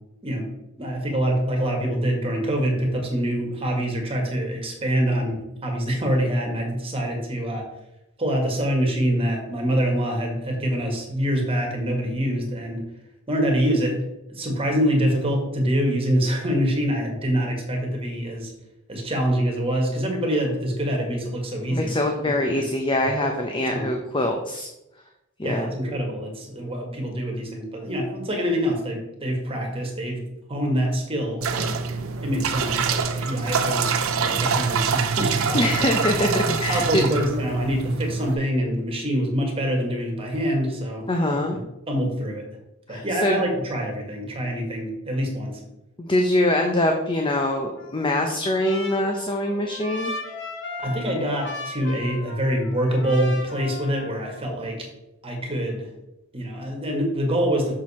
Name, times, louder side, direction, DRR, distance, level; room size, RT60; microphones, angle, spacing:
voice 1, 0.8-7.6 8.2-12.8 13.3-13.9 14.3-18.5 18.9-22.0 22.5-22.6 23.7-23.9 25.4-30.2 30.5-31.7 32.2-35.7 36.7-41.1 41.5-41.6 41.9-42.4 42.9-45.6 50.8-54.9 55.2-55.9 56.3-57.7, equal, 25° right, 1 dB, 1.7 m, -25 dB
voice 2, 21.7-24.7 25.4-25.7 35.5-37.0 41.1-41.6 42.9-43.4 46.0-50.1, left 1 dB, 25° left, 3 dB, 0.7 m, -23 dB
sound 1, 31.4-38.3, right 5 dB, 75° right, 0.7 m, -25 dB
Trumpet, 47.8-54.5, left 2 dB, 60° left, 1.5 m, -37 dB
6.7 x 6.1 x 4.3 m, 0.91 s
head